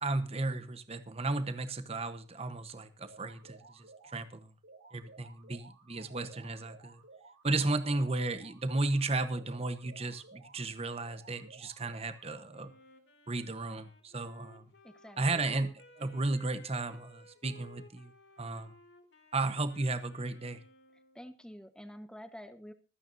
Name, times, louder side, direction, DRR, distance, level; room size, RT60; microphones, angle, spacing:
voice 1, 0.0-4.5 4.9-7.0 7.4-12.7 13.3-14.6 15.2-18.1 18.4-18.7 19.3-20.6, right 2 dB, 35° right, 10 dB, 1.1 m, -34 dB
sound 1, 3.0-4.2 4.6-7.4 7.8-10.6 11.0-12.6, right 3 dB, 90° right, 3.7 m, -56 dB
Wind instrument woodwind instrument, 12.5-21.3, left 2 dB, 80° left, 2.8 m, -58 dB
voice 2, 14.8-15.4 21.1-22.7, equal, 5° left, 8 dB, 1.3 m, -48 dB
25.5 x 9.3 x 2.7 m, 0.34 s
head